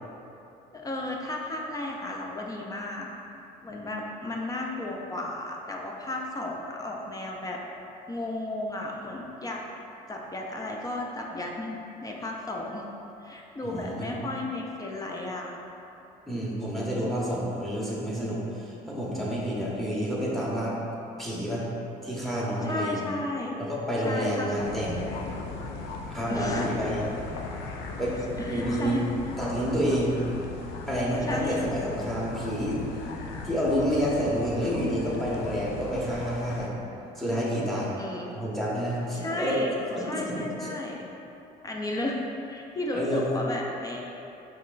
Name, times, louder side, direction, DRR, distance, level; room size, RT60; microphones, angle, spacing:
voice 1, 0.7-3.1 3.6-7.6 8.1-9.6 10.1-11.8 12.0-12.8 13.2-15.5 22.6-23.6 24.1-24.7 26.3-26.7 28.4-29.1 31.3-31.5 38.0-38.3 39.1-39.7 40.0-41.1 41.6-42.2 42.5-44.1, left 2 dB, 20° left, -1 dB, 0.4 m, -33 dB
voice 2, 13.6-14.2 16.3-20.8 21.2-21.7 22.0-23.0 23.6-25.0 26.1-27.1 28.0-28.2 28.5-29.0 29.4-30.2 30.9-32.8 33.4-36.8 37.1-37.9 38.3-40.3 40.6-40.7 42.9-43.3, equal, ahead, -6 dB, 1.0 m, -29 dB
sound 1, 24.6-36.7, left 3 dB, 85° left, 0.4 m, -38 dB
5.7 x 3.1 x 2.5 m, 2.9 s
cardioid pair, 110°, 17 cm